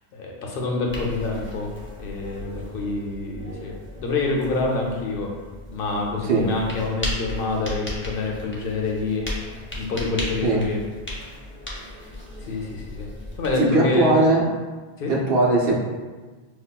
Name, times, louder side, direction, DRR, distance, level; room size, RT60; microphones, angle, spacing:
voice 1, 0.1-1.7 2.0-5.3 5.7-9.3 9.8-10.8 11.8-11.9 12.4-13.1 13.4-14.1 15.0-15.1, left 3 dB, 65° left, -1 dB, 0.7 m, -27 dB
sound 1, 0.9-13.6, left 1 dB, 15° left, 0.4 m, -36 dB
voice 2, 13.6-14.5 15.1-15.7, right 2 dB, 65° right, -4 dB, 0.9 m, -19 dB
5.4 x 2.2 x 2.2 m, 1.3 s
omnidirectional pair, 1.1 m